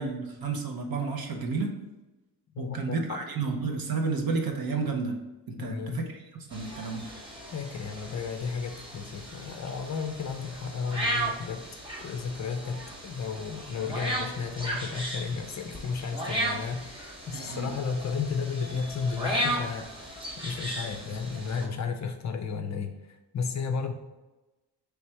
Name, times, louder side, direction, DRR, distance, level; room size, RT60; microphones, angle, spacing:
voice 1, 0.0-1.7 2.6-5.2 5.5-6.1 6.5-7.1 17.3-17.7, right 4 dB, 55° right, 2 dB, 0.8 m, -31 dB
voice 2, 2.5-3.2 3.6-3.8 5.6-6.0 7.5-11.7 12.0-19.9 20.4-23.9, left 5 dB, 40° left, 6 dB, 0.5 m, -33 dB
sound 1, 6.5-21.7, right 1 dB, 10° right, 0.9 m, -36 dB
3.3 x 3.1 x 4.5 m, 1.1 s
cardioid pair, 115°, 43 cm